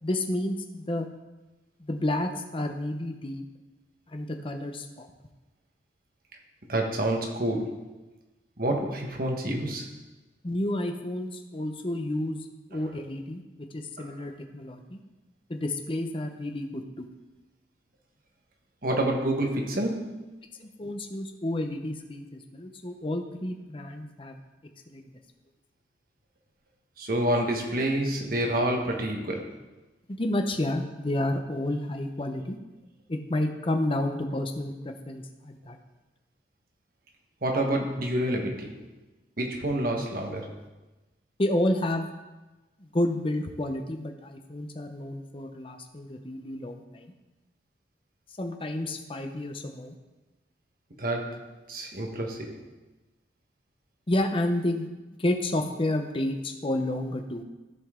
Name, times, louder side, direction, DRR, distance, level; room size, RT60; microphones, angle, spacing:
voice 1, 0.0-1.1 1.8-3.4 4.1-5.1 10.4-12.4 12.7-13.4 13.7-15.0 15.5-17.1 20.6-24.4 24.9-25.1 30.2-32.6 33.1-35.8 41.4-42.1 42.8-47.1 48.4-49.9 54.1-54.9 55.2-57.4, left 1 dB, 30° left, 5 dB, 0.8 m, -30 dB
voice 2, 6.7-7.9 8.6-10.0 14.0-14.1 18.8-20.2 27.0-29.5 37.4-38.9 39.4-40.6 51.0-52.6, right 1 dB, 55° right, 2 dB, 1.3 m, -28 dB
13.5 x 5.3 x 3.7 m, 1.1 s
head